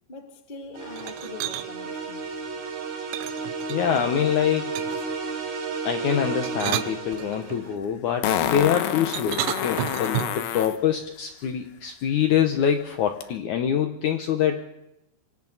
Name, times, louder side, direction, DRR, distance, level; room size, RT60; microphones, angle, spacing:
voice 1, 0.1-2.6, left 3 dB, 20° left, 3 dB, 1.6 m, -42 dB
sound 1, 0.7-7.7, right 5 dB, 70° right, 5.3 m, -33 dB
sound 2, 1.0-1.7 3.1-4.0 4.7-5.1 6.3-7.6 9.1-10.5, right 13 dB, 85° right, 3.2 m, -31 dB
voice 2, 3.7-4.8 5.8-14.6, left 9 dB, 85° left, 6 dB, 1.7 m, -25 dB
Fart, 7.1-7.2 8.2-10.8 13.2-13.3, left 10 dB, 70° left, 2.6 m, -27 dB
28.0 x 25.0 x 4.1 m, 0.86 s
omnidirectional pair, 5.0 m